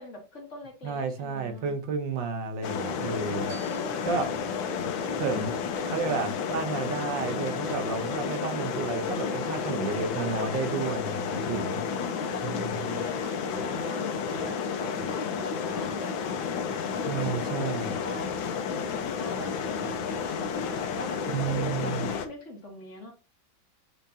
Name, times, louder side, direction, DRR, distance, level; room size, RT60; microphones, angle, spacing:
voice 1, 0.0-1.7 3.0-4.4 4.7-4.8 5.7-6.2 7.4-7.9 9.2-10.2 11.8-16.6 16.9-17.6 17.9-18.3 18.9-23.1, left 1 dB, 40° left, 2.0 m, -43 dB
voice 2, 0.8-3.5 4.1-4.2 5.2-5.6 5.9-11.8 12.4-12.7 17.1-17.9 21.3-22.1, right 5 dB, 70° right, 1.6 m, -31 dB
sound 1, 2.6-22.3, left 6 dB, 85° left, 1.7 m, -31 dB
sound 2, 2.6-12.7, left 3 dB, 70° left, 2.6 m, -47 dB
sound 3, 3.5-16.0, left 4 dB, 50° right, 1.5 m, -49 dB
9.1 x 4.4 x 2.7 m
omnidirectional pair, 2.1 m